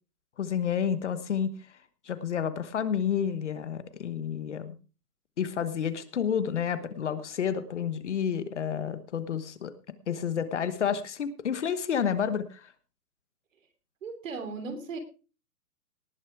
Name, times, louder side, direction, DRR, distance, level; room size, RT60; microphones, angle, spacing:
voice 1, 0.4-1.5 2.0-4.8 5.4-9.7 10.1-12.7, left 8 dB, 50° left, 13 dB, 1.2 m, -30 dB
voice 2, 14.0-15.0, right 4 dB, 55° right, 8 dB, 3.2 m, -36 dB
18.5 x 7.0 x 4.7 m, 0.34 s
hypercardioid pair, 170°, 47 cm